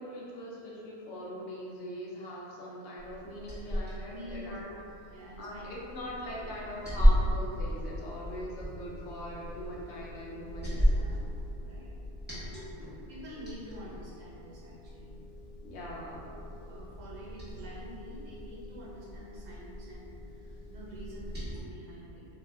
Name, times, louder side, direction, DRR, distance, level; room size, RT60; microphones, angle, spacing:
voice 1, 0.0-11.0 15.6-16.3, equal, 65° left, -5 dB, 0.8 m, -42 dB
Liquid, 3.0-21.6, equal, 10° right, 0.8 m, -34 dB
voice 2, 4.0-5.7 6.4-6.5 10.4-10.5 10.9-11.2 11.5-12.0 13.1-15.2 16.3-22.3, equal, 90° right, -5 dB, 1.1 m, -47 dB
2.7 x 2.2 x 3.4 m, 2.6 s
omnidirectional pair, 1.3 m